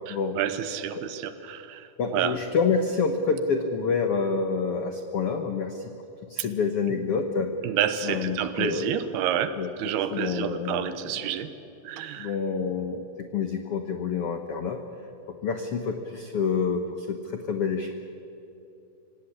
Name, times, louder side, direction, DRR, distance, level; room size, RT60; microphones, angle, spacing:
voice 1, 0.1-2.4 6.9-7.0 7.6-11.5 11.8-12.3, right 10 dB, 80° right, 12 dB, 3.1 m, -29 dB
voice 2, 2.0-5.8 6.3-7.5 8.0-9.0 9.6-9.7 10.1-11.1 12.2-14.8 15.4-17.9, left 5 dB, 85° left, 6 dB, 1.2 m, -27 dB
25.5 x 17.5 x 9.9 m, 3.0 s
omnidirectional pair, 4.5 m